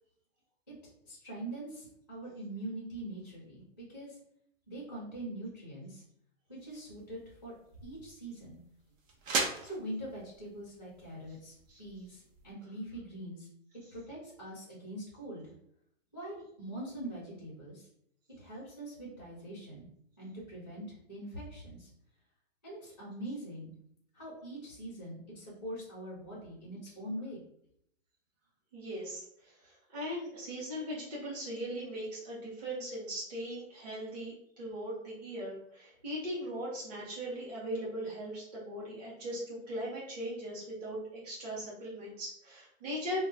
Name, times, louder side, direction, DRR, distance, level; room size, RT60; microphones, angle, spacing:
voice 1, 1.0-4.2 4.7-6.0 6.5-7.5 7.8-8.6 9.6-13.5 13.9-15.5 16.1-17.9 18.4-19.9 20.2-21.9 22.6-23.7 24.1-27.4, right 1 dB, 15° left, -6 dB, 0.4 m, -43 dB
sound 1, 6.6-12.5, right 3 dB, 70° right, 0.7 m, -40 dB
voice 2, 28.7-43.2, equal, 30° right, -7 dB, 0.7 m, -39 dB
2.2 x 2.0 x 3.4 m, 0.72 s
hypercardioid pair, 170°, 40 cm